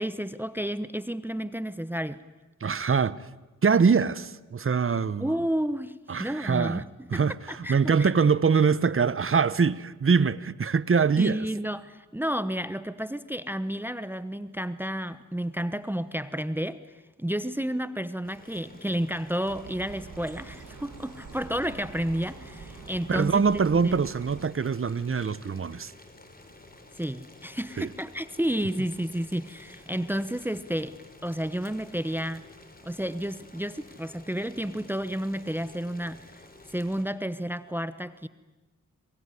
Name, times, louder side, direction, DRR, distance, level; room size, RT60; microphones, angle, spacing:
voice 1, 0.0-2.2 5.2-6.8 7.1-7.2 7.5-8.1 11.2-16.8 17.2-24.1 26.9-31.0 31.2-32.4 32.8-36.4 36.7-38.3, equal, 5° right, 1.0 m, -31 dB
voice 2, 2.6-3.2 3.6-5.3 6.1-6.8 7.1-11.5 23.1-25.9 27.8-27.9, right 5 dB, 45° right, 1.0 m, -24 dB
Boiling, 18.2-37.0, left 2 dB, 30° left, 4.6 m, -51 dB
sound 1, 19.5-24.5, right 5 dB, 75° right, 2.6 m, -45 dB
26.0 x 22.5 x 9.9 m
cardioid pair, 60°, 31 cm